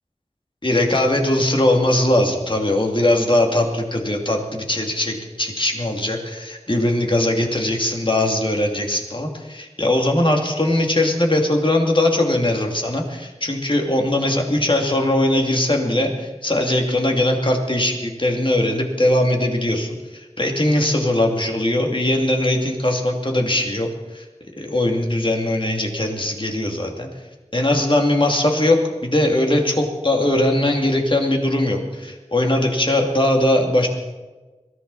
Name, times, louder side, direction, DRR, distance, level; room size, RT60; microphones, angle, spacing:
voice 1, 0.6-23.9 24.1-24.2 24.6-27.1 27.5-33.9, left 1 dB, 45° left, 2 dB, 2.6 m, -20 dB
22.0 x 14.5 x 4.1 m, 1.2 s
wide cardioid pair, 50°, 12 cm